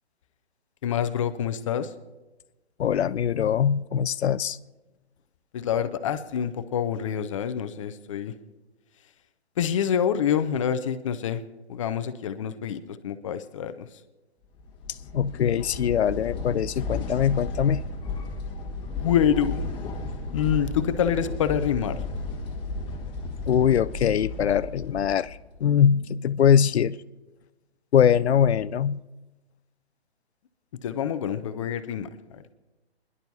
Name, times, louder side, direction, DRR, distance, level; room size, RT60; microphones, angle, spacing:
voice 1, 0.8-1.9 5.5-8.3 9.6-11.4 11.7-13.9 19.0-19.6 20.3-22.0 30.8-32.4, left 8 dB, 30° left, 12 dB, 0.5 m, -26 dB
voice 2, 2.8-4.6 15.1-17.8 23.5-27.0 27.9-29.0, left 8 dB, 75° left, 17 dB, 0.5 m, -22 dB
sound 1, 14.6-25.6, left 3 dB, 15° left, 1.4 m, -34 dB
30.0 x 11.0 x 2.7 m, 1.1 s
figure-of-eight pair, 135°, 33 cm